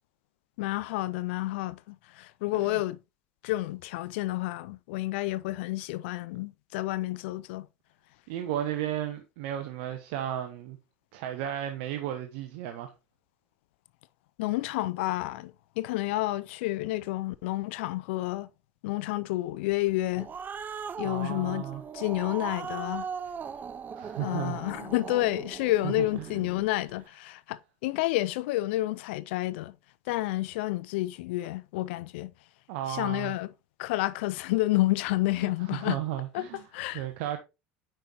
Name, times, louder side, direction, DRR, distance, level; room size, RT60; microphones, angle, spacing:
voice 1, 0.6-3.0 3.4-7.7 14.4-18.5 18.8-20.3 21.0-21.6 21.9-23.0 24.2-29.7 30.1-32.3 32.9-33.5 33.8-36.0 36.3-36.5 36.7-37.0, left 17 dB, 75° left, 0.5 m, -30 dB
voice 2, 8.3-10.8 11.1-12.9 21.0-21.8 23.9-24.6 25.8-26.0 32.7-33.3 35.4-36.7 36.9-37.4, right 11 dB, 70° right, 0.9 m, -34 dB
Growling, 19.9-26.7, right 6 dB, 30° right, 0.5 m, -39 dB
9.0 x 5.4 x 2.9 m
hypercardioid pair, 85°, 6 cm